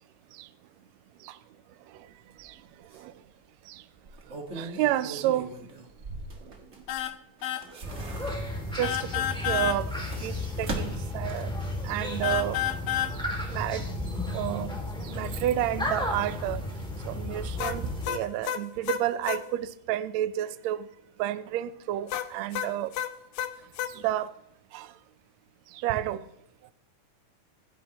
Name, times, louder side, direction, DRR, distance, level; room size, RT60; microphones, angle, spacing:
sound 1, 2.4-2.5 2.9-3.0 4.0-7.0 7.4-8.7 9.6-11.7 12.1-12.2, right 3 dB, 35° right, 1.2 m, -40 dB
voice 1, 2.4-3.1 3.6-3.8 4.3-5.5 6.4-6.5 7.7-7.8 8.7-9.9 10.2-11.5 11.8-12.6 13.1-13.9 14.3-14.7 15.0-16.6 17.0-20.9 21.2-22.9 23.8-24.3 24.7-24.9 25.7-26.3, right 12 dB, 80° right, 13 dB, 1.6 m, -31 dB
sound 2, 6.9-7.2 7.4-7.7 8.8-9.8 12.2-13.1 17.6-19.4 22.1-23.9, left 11 dB, 90° left, 1.5 m, -30 dB
sound 3, 7.8-18.1, left 1 dB, ahead, 1.7 m, -33 dB
25.0 x 10.0 x 3.0 m, 0.82 s
omnidirectional pair, 3.8 m